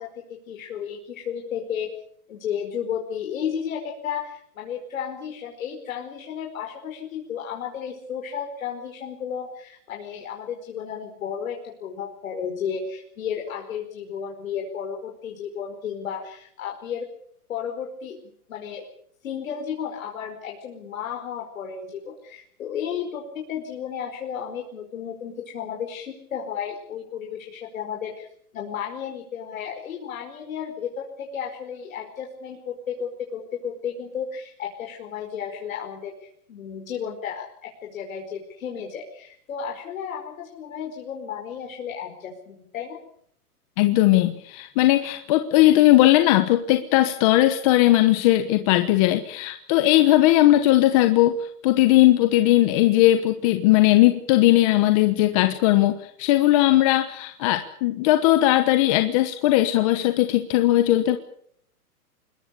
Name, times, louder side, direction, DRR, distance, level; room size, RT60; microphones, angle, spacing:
voice 1, 0.0-1.9 2.3-17.1 17.5-18.2 18.5-18.8 19.2-28.3 28.5-43.0, left 8 dB, 60° left, 1 dB, 5.1 m, -33 dB
voice 2, 43.8-61.2, left 15 dB, 20° left, 8 dB, 1.1 m, -18 dB
25.5 x 21.0 x 6.9 m, 0.65 s
hypercardioid pair, 165°, 46 cm